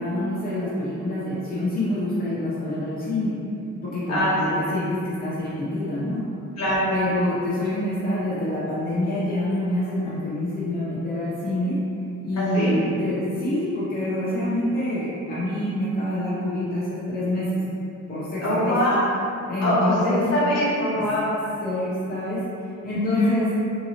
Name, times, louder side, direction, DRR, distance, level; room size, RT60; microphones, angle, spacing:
voice 1, 0.0-3.3 3.8-6.2 6.9-11.8 12.2-17.7 18.1-18.8 19.5-20.3 21.6-22.4 22.8-23.5, left 1 dB, 30° left, -9 dB, 0.7 m, -26 dB
voice 2, 12.4-12.7 18.4-19.2 19.6-21.5 22.9-23.3, left 1 dB, 60° left, -9 dB, 1.4 m, -23 dB
2.8 x 2.7 x 2.8 m, 2.7 s
cardioid pair, 90°, 30 cm